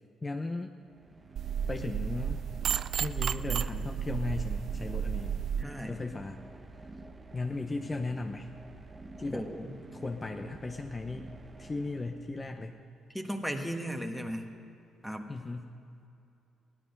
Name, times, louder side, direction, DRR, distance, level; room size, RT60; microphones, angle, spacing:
voice 1, 0.2-0.7 1.7-2.4 3.0-5.4 5.9-6.4 6.8-6.9 7.3-8.5 9.2-9.5 9.9-11.3 11.6-12.8 15.3-15.7, left 3 dB, 25° left, 4 dB, 0.7 m, -36 dB
sound 1, 0.8-12.6, right 2 dB, 30° right, 1.1 m, -49 dB
sound 2, 1.4-5.6, right 8 dB, 65° right, 0.3 m, -32 dB
voice 2, 5.6-6.0 9.2-9.7 13.1-14.5 15.0-15.3, equal, ahead, 3 dB, 1.3 m, -36 dB
16.5 x 11.5 x 5.4 m, 2.7 s
cardioid pair, 90°, 0 cm